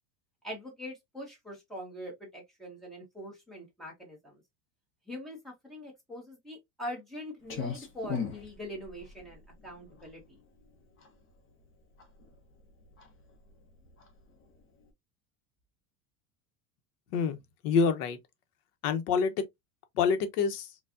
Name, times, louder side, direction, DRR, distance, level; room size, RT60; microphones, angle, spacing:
voice 1, 0.4-4.4 5.1-10.4, equal, ahead, 1.2 m, -43 dB
Clock, 7.4-14.9, left 6 dB, 30° left, 0.9 m, -41 dB
voice 2, 17.6-18.2 18.8-19.3 20.0-20.7, left 5 dB, 85° left, 1.0 m, -26 dB
4.5 x 2.4 x 2.5 m
supercardioid pair, 170°, 45 cm